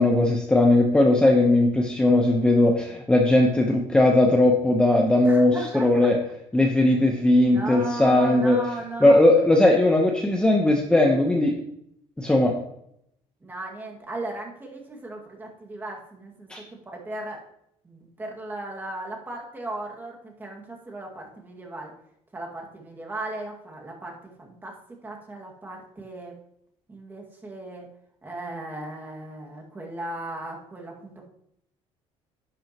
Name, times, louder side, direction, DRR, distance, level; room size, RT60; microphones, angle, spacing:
voice 1, 0.0-6.2 6.5-8.6 9.0-11.5 12.2-12.5 16.5-16.6, left 1 dB, 5° left, 1 dB, 0.9 m, -19 dB
voice 2, 5.2-6.1 7.5-9.2 13.4-16.5 16.9-17.4 17.8-21.9 22.3-24.8 25.0-26.3 26.9-27.9 28.2-31.3, right 2 dB, 15° right, 0 dB, 2.0 m, -36 dB
11.0 x 9.0 x 3.0 m, 0.75 s
cardioid pair, 135°, 12 cm